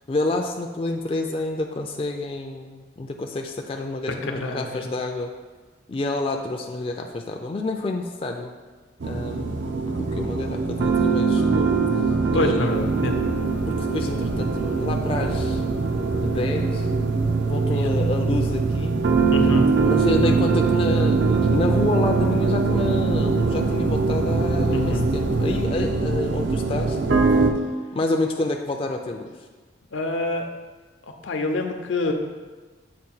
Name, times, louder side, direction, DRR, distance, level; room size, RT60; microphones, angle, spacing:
voice 1, 0.1-5.3 5.9-8.5 9.0-11.7 12.3-12.9 13.7-15.6 16.2-16.9 17.4-19.0 19.8-27.0 27.9-29.3, left 2 dB, 30° left, 2 dB, 0.3 m, -28 dB
voice 2, 4.3-4.8 12.3-13.2 17.7-17.9 19.3-19.7 24.7-25.1 29.9-30.5 31.2-32.1, left 2 dB, 85° left, 4 dB, 0.6 m, -26 dB
sound 1, 9.0-27.5, right 4 dB, 70° right, 0.5 m, -22 dB
sound 2, 12.7-25.6, right 1 dB, 55° right, 0.9 m, -37 dB
7.6 x 2.5 x 5.4 m, 1.4 s
head